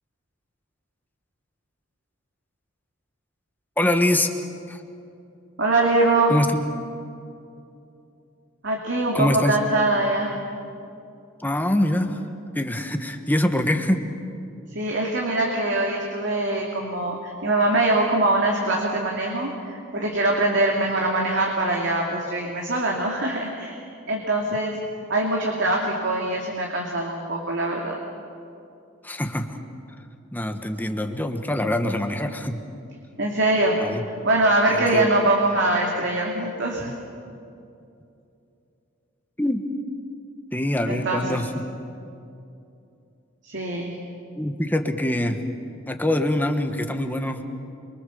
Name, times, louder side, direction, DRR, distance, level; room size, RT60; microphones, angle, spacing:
voice 1, 3.8-4.3 4.7-4.8 6.3-6.6 9.1-9.6 11.4-12.2 12.5-14.0 29.0-29.6 30.3-32.6 33.8-34.0 34.7-35.1 39.4-39.6 40.5-41.7 44.4-45.4 45.9-47.4, left 1 dB, 10° left, 5 dB, 1.5 m, -24 dB
voice 2, 5.6-6.4 8.6-10.3 14.7-24.8 25.1-28.0 33.2-33.8 34.2-36.9 40.9-41.4 43.4-44.0, right 2 dB, 60° right, 0 dB, 2.7 m, -23 dB
27.5 x 24.0 x 7.1 m, 2.7 s
head